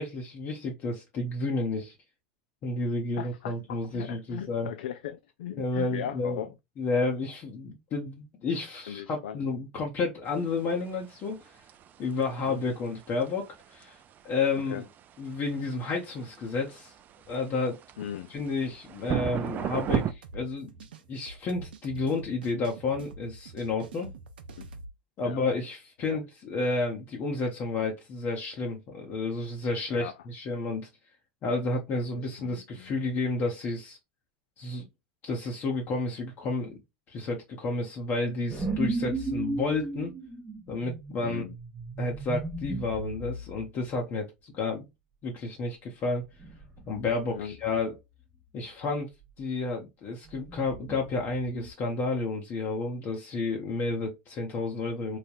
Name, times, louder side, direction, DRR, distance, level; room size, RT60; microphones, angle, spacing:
voice 1, 0.0-1.9 2.6-4.7 5.6-6.4 6.8-11.4 12.0-14.0 14.2-14.8 15.2-16.9 17.3-17.8 18.3-20.7 21.1-24.1 25.2-30.9 31.4-34.0 34.6-34.9 35.2-36.8 37.1-40.1 40.7-41.4 42.0-44.9 45.2-46.2 46.9-47.9 48.5-49.1 49.4-55.2, left 3 dB, 40° left, 0.9 m, -31 dB
voice 2, 3.2-6.5 8.9-9.4 12.4-12.6 14.6-14.8 18.0-18.3 24.6-24.7 25.2-25.4 26.1-26.2 29.9-30.1 32.1-32.9 41.2-41.5 47.3-47.6, left 10 dB, 80° left, 0.3 m, -38 dB
sound 1, 10.3-20.1, right 10 dB, 35° right, 0.3 m, -36 dB
sound 2, 20.0-24.9, right 3 dB, 85° right, 0.5 m, -46 dB
sound 3, 38.5-43.7 46.4-47.1 47.4-47.8 50.3-51.7, right 2 dB, 10° right, 0.7 m, -35 dB
3.2 x 2.1 x 2.4 m
hypercardioid pair, 100°, 5 cm